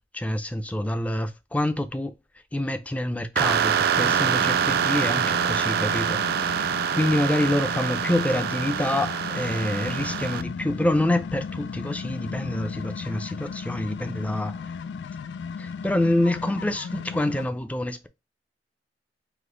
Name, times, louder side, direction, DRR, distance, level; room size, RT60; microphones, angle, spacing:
voice 1, 0.0-2.1 2.5-14.7 15.6-18.1, left 1 dB, 10° left, 0.4 m, -27 dB
sound 1, 3.4-10.4, right 8 dB, 60° right, 0.3 m, -25 dB
sound 2, 3.9-17.5, left 5 dB, 80° left, 0.3 m, -35 dB
5.0 x 2.0 x 3.8 m
head